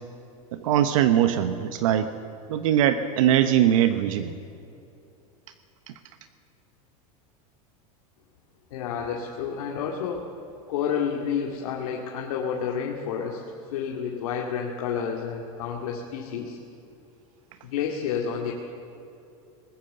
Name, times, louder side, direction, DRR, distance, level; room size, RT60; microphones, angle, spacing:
voice 1, 0.5-2.1 2.5-4.3 5.9-6.0, right 10 dB, 65° right, 9 dB, 1.0 m, -21 dB
voice 2, 8.7-10.3 10.7-13.4 13.7-16.6 17.6-18.5, left 7 dB, 70° left, -1 dB, 2.4 m, -30 dB
23.0 x 20.0 x 6.8 m, 2.7 s
supercardioid pair, 175°, 19 cm